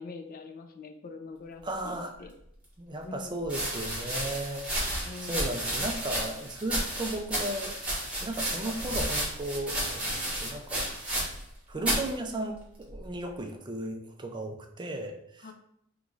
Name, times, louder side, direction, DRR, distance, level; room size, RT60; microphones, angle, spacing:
voice 1, 0.0-2.3 3.0-3.4 5.0-5.6 15.4-15.5, left 4 dB, 45° left, 5 dB, 0.4 m, -44 dB
voice 2, 1.6-2.1 2.8-7.8 8.2-10.9 11.7-15.5, right 1 dB, 20° right, 4 dB, 0.4 m, -35 dB
sound 1, 2.4-2.5 3.4-11.5 11.8-12.1 12.9-13.3, right 1 dB, 5° right, 1.2 m, -32 dB
3.6 x 3.0 x 3.8 m, 0.72 s
head